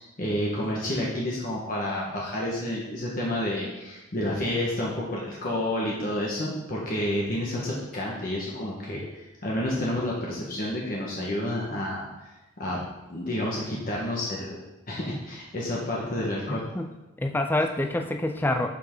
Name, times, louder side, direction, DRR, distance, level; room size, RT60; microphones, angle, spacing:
voice 1, 0.2-12.0 12.6-12.8 13.1-14.6 14.9-16.6, left 1 dB, 45° left, -4 dB, 1.5 m, -29 dB
voice 2, 16.5-16.9 17.2-18.7, left 1 dB, 10° left, 5 dB, 0.4 m, -27 dB
11.0 x 5.7 x 3.9 m, 1.0 s
head